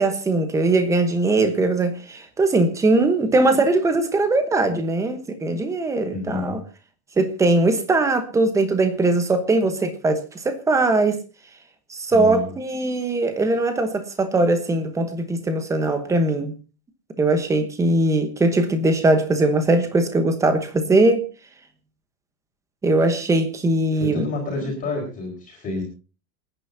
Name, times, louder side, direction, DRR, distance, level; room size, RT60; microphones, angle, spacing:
voice 1, 0.0-6.6 7.2-11.2 11.9-16.5 17.2-21.3 22.8-24.2, right 2 dB, 5° right, 1.0 m, -20 dB
voice 2, 6.1-6.6 12.1-12.5 23.9-25.8, left 3 dB, 15° left, 4.7 m, -29 dB
27.5 x 9.8 x 2.7 m
supercardioid pair, 170°, 48 cm